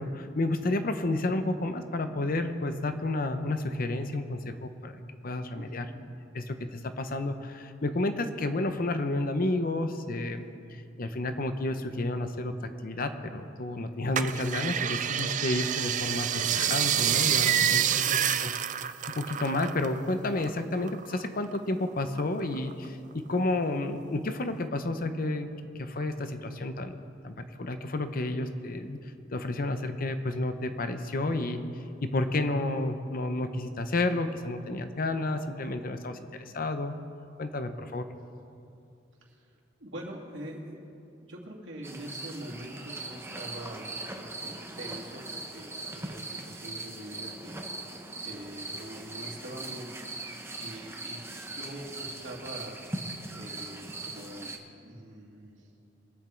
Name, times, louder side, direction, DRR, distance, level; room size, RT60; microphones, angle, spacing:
voice 1, 0.0-5.9 6.3-10.4 10.7-18.0 18.4-18.8 19.1-27.0 27.2-29.0 29.3-31.6 32.0-36.9 37.4-38.1, left 2 dB, 50° left, 8 dB, 0.8 m, -31 dB
voice 2, 5.5-6.0 18.0-18.4 39.2-40.8 41.2-47.6 48.2-50.3 50.6-51.2 51.4-52.8 53.3-55.7, right 1 dB, 75° right, -2 dB, 2.4 m, -44 dB
sound 1, 14.2-20.0 20.3-21.6 22.0-22.9 23.3-23.4, right 10 dB, 40° right, 0.4 m, -28 dB
sound 2, 41.8-54.6, right 2 dB, 15° right, 0.9 m, -40 dB
22.5 x 8.4 x 4.5 m, 2.7 s
head